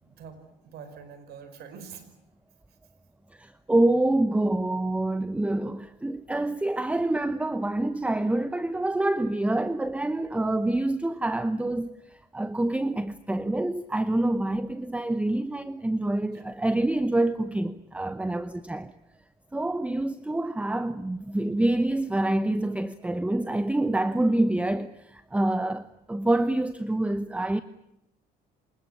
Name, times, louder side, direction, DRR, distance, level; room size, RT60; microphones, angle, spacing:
voice 1, 0.0-2.1 16.3-16.4, right 6 dB, 70° right, 5.1 m, -45 dB
voice 2, 3.3-18.9 19.5-27.6, right 1 dB, 5° right, 0.9 m, -26 dB
26.0 x 20.5 x 9.8 m
cardioid pair, 110°, 17 cm